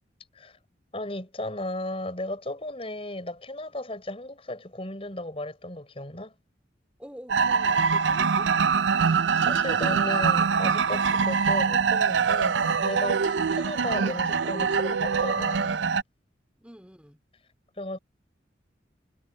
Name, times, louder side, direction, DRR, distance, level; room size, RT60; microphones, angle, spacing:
voice 1, 0.9-6.3 9.0-16.0 17.7-18.0, left 1 dB, 30° left, 5.7 m, -35 dB
voice 2, 7.0-8.5 16.6-17.2, equal, 5° right, 4.4 m, -46 dB
sound 1, 7.3-16.0, right 5 dB, 85° right, 0.5 m, -24 dB
head